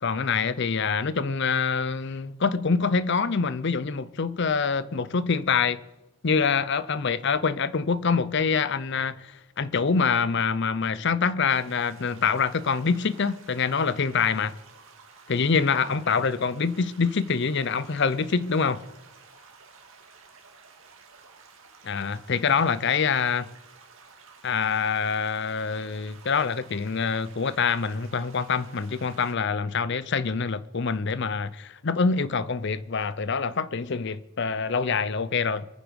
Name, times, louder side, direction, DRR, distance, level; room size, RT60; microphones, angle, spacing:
voice 1, 0.0-5.8 6.2-14.6 15.3-18.8 21.8-23.5 24.4-35.7, left 5 dB, 50° left, 0.6 m, -25 dB
sound 1, 11.5-29.3, right 5 dB, 60° right, 2.2 m, -52 dB
25.5 x 9.5 x 5.2 m
head